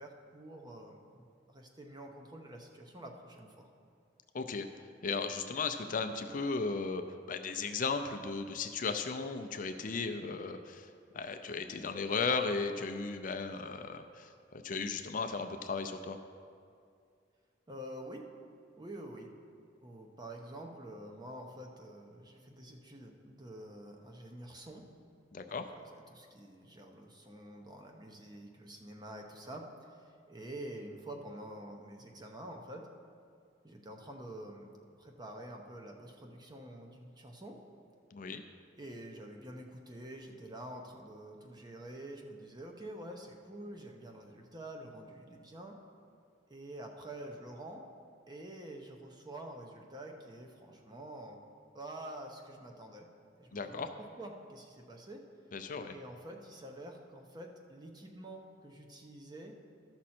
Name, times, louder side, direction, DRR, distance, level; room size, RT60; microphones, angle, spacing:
voice 1, 0.0-3.7 17.7-18.2 18.8-19.3 19.8-24.8 25.4-32.9 33.6-34.7 35.0-37.6 38.8-45.8 46.5-47.8 48.3-51.4 51.7-53.1 53.4-55.2 55.9-59.6, right 1 dB, 25° right, 2 dB, 0.8 m, -47 dB
voice 2, 4.3-4.7 5.0-16.2 25.3-25.6 38.1-38.4 53.5-53.9 55.5-55.9, left 4 dB, 45° left, 7 dB, 0.5 m, -36 dB
13.0 x 6.2 x 4.3 m, 2.3 s
head